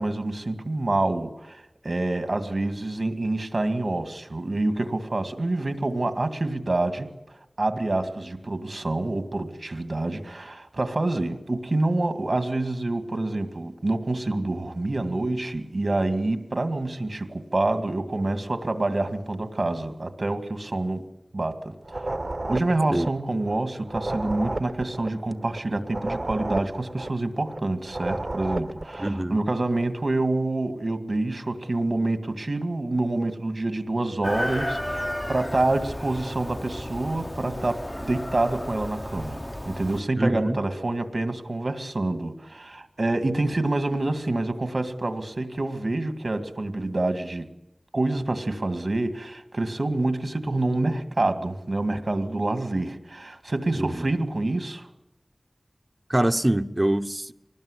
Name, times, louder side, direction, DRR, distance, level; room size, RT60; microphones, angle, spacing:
voice 1, 0.0-21.1 21.3-21.7 22.5-47.5 47.9-54.9, right 2 dB, 70° right, 2.1 m, -27 dB
sound 1, 21.8-29.2, right 2 dB, 55° right, 1.3 m, -32 dB
voice 2, 29.0-29.4 40.2-40.6 53.8-54.0 56.1-57.3, right 1 dB, 30° right, 0.9 m, -24 dB
Chicken rooster, 34.2-40.0, left 1 dB, 15° left, 0.8 m, -33 dB
25.0 x 19.5 x 9.9 m
wide cardioid pair, 55°, 0 cm